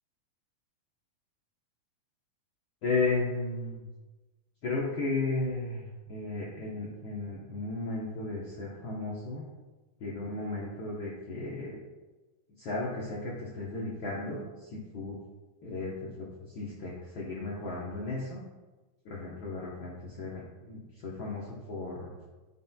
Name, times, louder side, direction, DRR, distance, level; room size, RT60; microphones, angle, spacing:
voice 1, 2.8-3.8 4.6-9.4 10.0-11.8 12.6-15.2 15.6-15.9 16.2-16.3 16.5-18.4 19.0-22.2, left 3 dB, 85° left, -5 dB, 1.1 m, -34 dB
10.0 x 5.5 x 2.2 m, 1.2 s
omnidirectional pair, 3.6 m